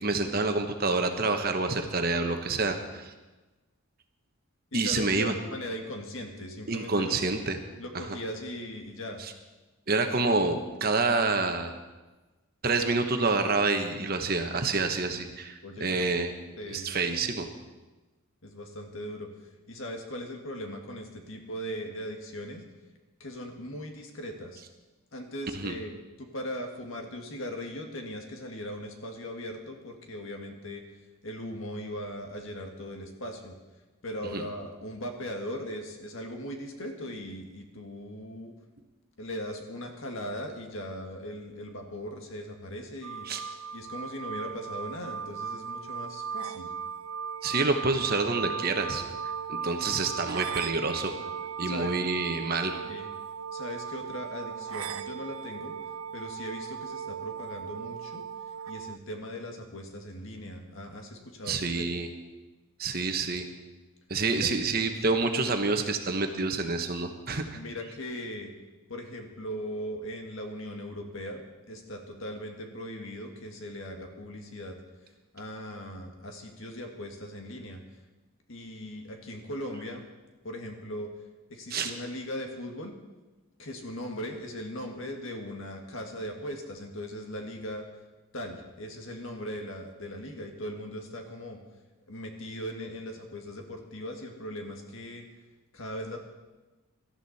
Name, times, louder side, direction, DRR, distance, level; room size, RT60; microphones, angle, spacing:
voice 1, 0.0-3.1 4.7-5.3 6.7-7.6 7.9-8.0 9.2-9.3 9.9-11.7 12.6-16.3 16.7-17.5 25.5-25.7 34.3-34.4 43.3-43.4 47.4-49.0 49.5-51.1 51.6-52.8 61.5-62.1 62.8-63.5 64.1-67.4 81.7-81.9, right 3 dB, 45° right, 6 dB, 1.2 m, -27 dB
voice 2, 4.7-7.2 7.8-9.2 15.6-16.1 16.6-16.9 18.4-19.3 19.7-22.6 23.2-24.6 25.1-30.8 31.2-33.6 34.0-38.5 39.2-43.3 43.7-46.7 51.6-51.9 52.8-53.1 53.5-55.7 56.1-58.2 58.7-61.9 64.3-64.5 67.6-68.5 68.9-74.8 75.3-77.8 78.5-80.0 80.4-81.1 81.5-82.9 83.6-87.8 88.3-91.6 92.1-95.2 95.7-96.2, equal, 65° left, 3 dB, 2.0 m, -39 dB
sound 1, 43.0-59.0, right 7 dB, 75° right, 0.5 m, -37 dB
18.5 x 13.0 x 4.3 m, 1.2 s
head